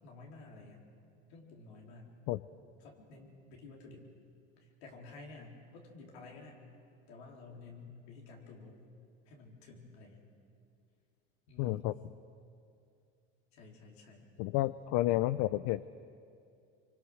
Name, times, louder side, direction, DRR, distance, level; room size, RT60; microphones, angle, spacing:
voice 1, 0.0-0.8 1.3-2.1 2.8-4.1 4.6-6.6 7.1-8.8 9.3-10.2 11.5-12.0 13.5-14.3, left 3 dB, 85° left, -1 dB, 4.3 m, -52 dB
voice 2, 11.6-11.9 14.4-15.8, left 16 dB, 65° left, 14 dB, 0.6 m, -30 dB
25.5 x 24.5 x 6.5 m, 2.4 s
supercardioid pair, 90°, 31 cm